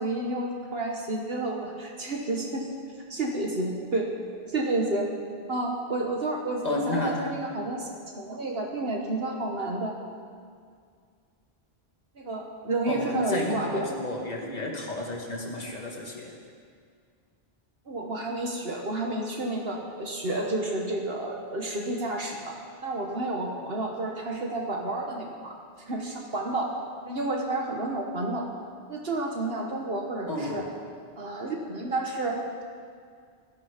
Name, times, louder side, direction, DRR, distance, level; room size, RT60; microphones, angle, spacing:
voice 1, 0.0-2.7 3.1-4.1 4.5-5.1 5.5-7.9 8.2-9.9 12.2-13.9 17.9-22.5 22.8-25.5 25.9-26.7 27.1-28.5 28.9-30.6 31.2-32.6, right 2 dB, 70° right, 0 dB, 1.7 m, -30 dB
voice 2, 6.6-7.4 12.9-16.3 30.3-30.7, left 2 dB, 40° left, 0 dB, 2.2 m, -32 dB
18.5 x 13.5 x 5.2 m, 2.1 s
omnidirectional pair, 1.0 m